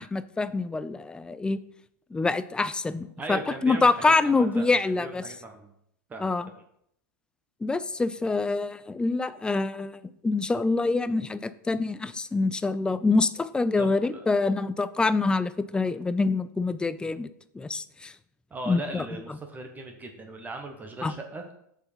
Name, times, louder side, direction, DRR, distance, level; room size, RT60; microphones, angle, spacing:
voice 1, 0.0-1.6 2.1-5.2 6.2-6.5 7.6-17.3 17.5-18.1 18.7-19.1 21.0-21.1, left 3 dB, 10° left, 14 dB, 0.4 m, -26 dB
voice 2, 3.2-5.7 6.1-6.6 13.8-14.3 18.5-21.5, right 2 dB, 15° right, 4 dB, 1.1 m, -39 dB
6.6 x 4.6 x 5.6 m, 0.72 s
figure-of-eight pair, 90°, 10 cm